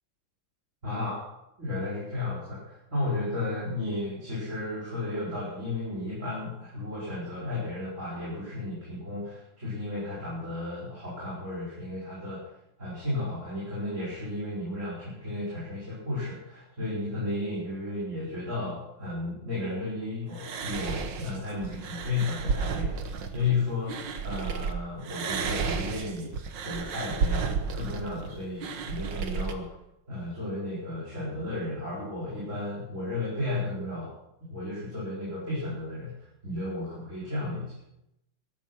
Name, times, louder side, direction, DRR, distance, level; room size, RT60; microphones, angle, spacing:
voice 1, 0.8-1.3 1.6-12.4 12.8-29.7 30.1-34.1 34.5-36.1 36.4-37.8, left 2 dB, 35° right, -8 dB, 5.4 m, -33 dB
sound 1, 20.3-24.7 25.0-29.5, right 5 dB, 65° right, 1.8 m, -32 dB
14.0 x 13.5 x 6.0 m, 0.83 s
omnidirectional pair, 2.3 m